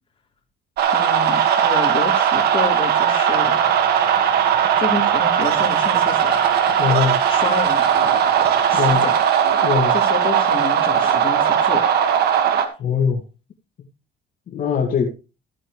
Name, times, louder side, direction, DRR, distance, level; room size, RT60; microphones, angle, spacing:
sound 1, 0.8-12.7, right 8 dB, 70° right, 1.8 m, -18 dB
voice 1, 0.9-3.5 4.8-6.4 7.3-7.8 8.7-9.1 9.9-11.8, left 5 dB, 30° left, 2 dB, 3.3 m, -29 dB
sound 2, 3.4-8.8, right 2 dB, 30° right, 5.2 m, -43 dB
voice 2, 6.8-7.2 8.8-9.1 9.6-9.9 12.8-13.2 14.5-15.1, left 7 dB, 55° left, 1 dB, 2.1 m, -21 dB
15.0 x 8.7 x 3.2 m, 0.31 s
cardioid pair, 110°, 17 cm